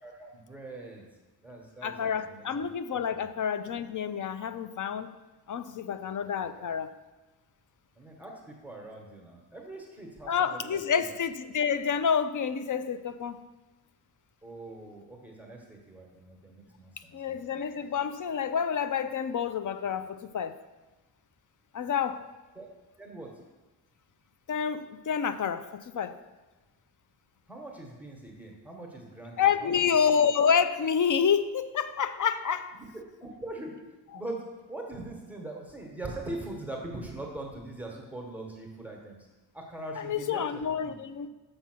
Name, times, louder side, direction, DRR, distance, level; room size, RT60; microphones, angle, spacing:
voice 1, 0.0-1.1 1.4-2.7 3.1-3.3 6.6-6.7 8.0-11.2 14.4-17.6 22.5-22.7 23.0-23.3 27.5-29.8 32.9-33.8 34.1-39.2 39.5-40.9, right 2 dB, 5° right, -1 dB, 1.2 m, -42 dB
voice 2, 1.8-5.1 5.5-6.9 10.3-13.4 17.1-20.6 21.7-22.2 24.5-26.2 29.4-32.7 40.0-41.3, left 7 dB, 50° left, 12 dB, 0.5 m, -28 dB
6.5 x 5.7 x 6.0 m, 1.2 s
wide cardioid pair, 115°, 40 cm